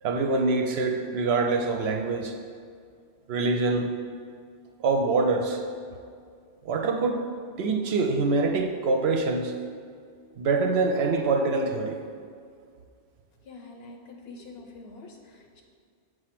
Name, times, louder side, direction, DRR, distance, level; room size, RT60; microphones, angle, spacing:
voice 1, 0.0-2.3 3.3-3.9 4.8-5.6 6.6-7.2 7.6-9.5 10.4-12.0, right 3 dB, 65° right, 4 dB, 0.7 m, -25 dB
voice 2, 13.4-15.6, left 3 dB, 65° left, 2 dB, 0.8 m, -46 dB
7.4 x 2.6 x 5.8 m, 2.2 s
omnidirectional pair, 1.2 m